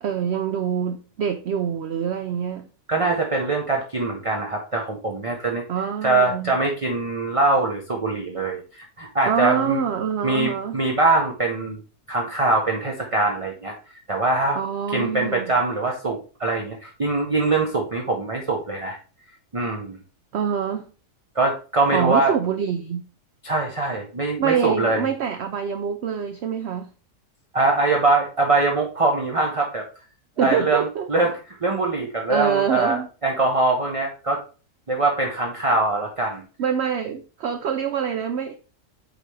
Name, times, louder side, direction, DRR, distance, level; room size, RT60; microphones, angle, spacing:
voice 1, 0.0-2.7 5.7-6.5 9.3-10.8 14.6-15.5 20.3-20.9 21.9-23.1 24.4-26.9 30.4-31.1 32.3-33.1 36.6-38.6, right 7 dB, 80° right, 0.6 m, -25 dB
voice 2, 2.9-5.6 6.0-9.8 10.2-11.8 12.1-13.8 14.1-14.6 14.9-19.0 19.5-20.0 21.3-22.3 23.4-25.1 27.5-29.8 30.4-34.4 34.9-36.4, right 2 dB, 35° right, 0.5 m, -23 dB
8.0 x 4.1 x 3.2 m
omnidirectional pair, 1.7 m